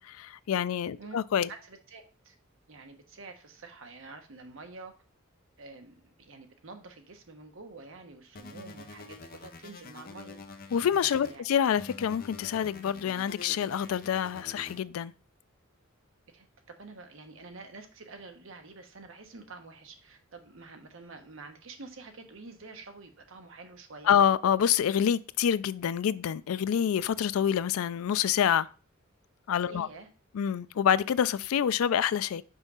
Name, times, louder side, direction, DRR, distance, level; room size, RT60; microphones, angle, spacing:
voice 1, 0.0-1.5 10.7-15.1 24.1-28.7 29.5-29.9 30.3-32.4, left 8 dB, 85° left, 0.3 m, -27 dB
voice 2, 1.5-2.4 2.7-4.9 5.6-10.7 11.2-11.5 16.3-24.2 29.6-30.1, right 3 dB, 65° right, 1.0 m, -48 dB
sound 1, 8.3-11.4 11.8-14.8, left 3 dB, 45° left, 0.7 m, -47 dB
5.5 x 3.5 x 5.5 m
head